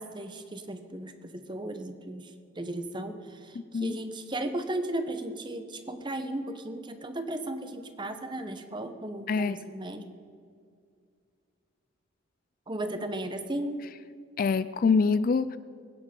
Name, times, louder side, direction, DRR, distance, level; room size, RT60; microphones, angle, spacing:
voice 1, 0.0-10.1 12.7-13.8, right 1 dB, 20° right, 8 dB, 0.9 m, -35 dB
voice 2, 14.4-15.6, left 5 dB, 45° left, 15 dB, 0.3 m, -25 dB
21.5 x 9.2 x 5.3 m, 2.2 s
head